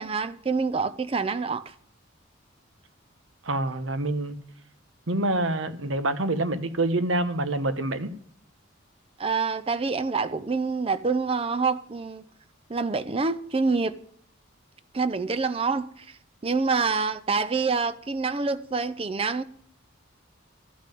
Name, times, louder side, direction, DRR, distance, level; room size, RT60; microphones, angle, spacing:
voice 1, 0.0-1.6 9.2-12.2 12.7-14.0 14.9-16.1 16.4-19.4, right 4 dB, 30° right, 0.5 m, -26 dB
voice 2, 3.4-4.4 5.1-8.1, right 2 dB, 80° right, 1.0 m, -26 dB
12.5 x 5.5 x 9.1 m
head